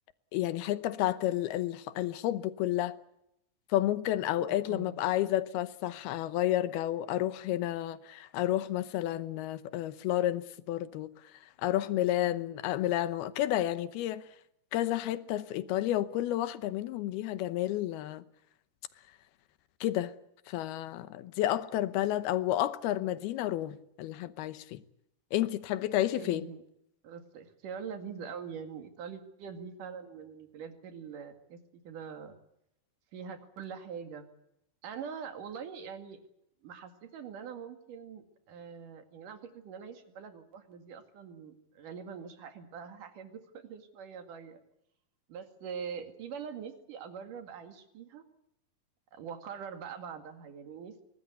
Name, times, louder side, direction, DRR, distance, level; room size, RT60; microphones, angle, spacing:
voice 1, 0.3-3.0 3.7-11.1 11.6-14.3 14.7-18.2 19.8-20.2 20.5-24.8 25.3-26.5, left 13 dB, 85° left, 2.9 m, -31 dB
voice 2, 4.4-5.0 12.2-12.5 26.2-26.6 27.0-32.4 33.1-34.3 34.8-36.2 36.6-44.6 45.3-48.2 49.1-51.0, right 7 dB, 60° right, 3.5 m, -44 dB
23.5 x 19.5 x 8.2 m
omnidirectional pair, 4.4 m